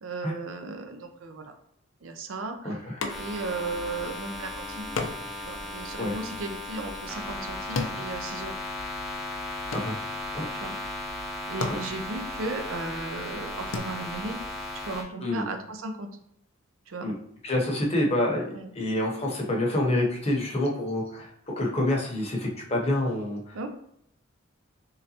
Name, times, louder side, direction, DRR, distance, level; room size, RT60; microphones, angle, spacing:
voice 1, 0.0-1.5 2.0-2.8 3.1-4.9 5.4-8.5 10.6-10.7 11.1-14.4 14.9-16.1 16.9-17.1 18.5-18.7 23.5-23.7, right 3 dB, 75° right, 6 dB, 0.5 m, -36 dB
voice 2, 2.6-3.0 6.0-6.2 9.7-9.9 10.3-10.5 15.2-15.4 17.0-17.1 17.4-18.5 18.7-23.7, left 1 dB, 30° left, -1 dB, 0.8 m, -27 dB
sound 1, 3.0-3.6 3.9-4.0 5.0-8.9 9.2-10.4 11.1-11.2 11.5-13.8, left 3 dB, 70° left, 0.5 m, -36 dB
sound 2, 3.1-15.0, left 2 dB, ahead, 0.5 m, -36 dB
3.8 x 3.2 x 2.8 m, 0.72 s
head